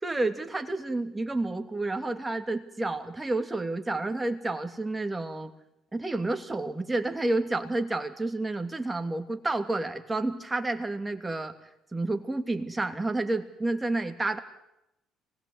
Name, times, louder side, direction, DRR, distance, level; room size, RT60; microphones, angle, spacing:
voice 1, 0.0-5.5 5.9-11.5 11.9-14.4, right 2 dB, 15° right, 5 dB, 2.8 m, -30 dB
25.0 x 20.0 x 8.0 m, 0.87 s
supercardioid pair, 75°, 0 cm